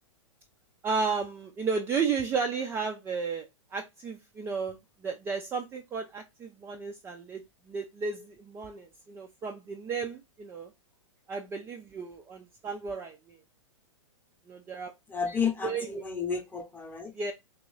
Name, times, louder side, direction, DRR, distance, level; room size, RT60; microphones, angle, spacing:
voice 1, 0.8-7.4 7.7-10.7 11.3-13.4 14.5-14.9 15.3-16.0 17.1-17.3, right 5 dB, 15° right, 0.4 m, -33 dB
voice 2, 15.1-17.1, left 6 dB, 10° left, 0.8 m, -31 dB
3.0 x 3.0 x 3.8 m
hypercardioid pair, 115°, 17 cm